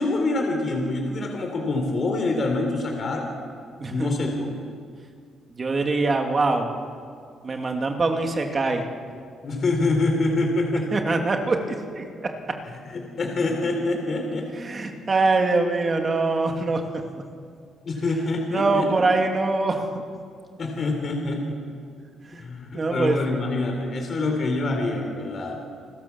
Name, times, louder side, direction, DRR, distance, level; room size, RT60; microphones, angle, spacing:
voice 1, 0.0-3.3 3.9-4.6 9.4-10.9 12.9-14.5 17.8-18.9 20.6-21.6 22.4-25.6, left 2 dB, 50° left, 2 dB, 3.9 m, -25 dB
voice 2, 5.6-6.7 7.4-8.8 10.9-12.0 14.5-16.8 18.5-19.9 22.3-22.4 22.7-23.3, right 3 dB, 35° right, 4 dB, 2.6 m, -23 dB
29.5 x 13.0 x 7.2 m, 2.2 s
cardioid pair, 90°, 0 cm